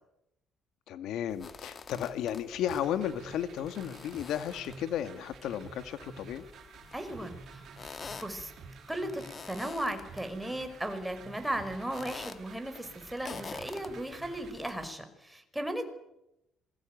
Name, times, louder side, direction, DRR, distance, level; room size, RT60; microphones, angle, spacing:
voice 1, 0.9-6.4, left 10 dB, 80° left, 10 dB, 2.0 m, -34 dB
sound 1, 1.3-14.9, left 5 dB, 40° left, 2.1 m, -49 dB
sound 2, 2.6-14.5, right 6 dB, 60° right, 5.2 m, -51 dB
voice 2, 6.9-7.6 8.2-8.5 8.9-9.2 9.5-15.8, right 1 dB, 5° right, 7 dB, 5.6 m, -36 dB
27.0 x 22.5 x 9.3 m, 0.86 s
cardioid pair, 105°, 0 cm